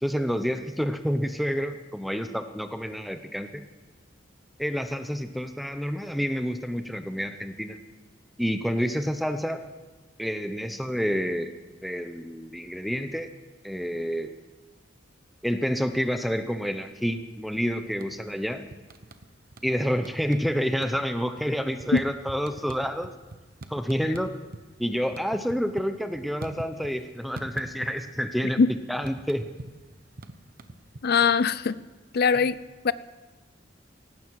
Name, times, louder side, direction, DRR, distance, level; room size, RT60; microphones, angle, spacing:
voice 1, 0.0-3.6 4.6-7.8 8.4-9.6 10.2-11.5 11.8-13.3 13.6-14.3 15.4-18.6 19.6-23.1 23.7-24.3 24.8-28.6 28.9-29.4, equal, ahead, 8 dB, 0.7 m, -28 dB
sound 1, 18.0-18.4 18.7-19.7 20.0-20.5 20.8-24.6 24.9-27.0 27.4-28.2 28.5-31.4, right 2 dB, 50° right, 1.0 m, -42 dB
voice 2, 31.0-31.8 32.1-32.6 32.8-32.9, left 5 dB, 55° left, 17 dB, 0.5 m, -21 dB
18.5 x 15.5 x 4.7 m, 1.3 s
head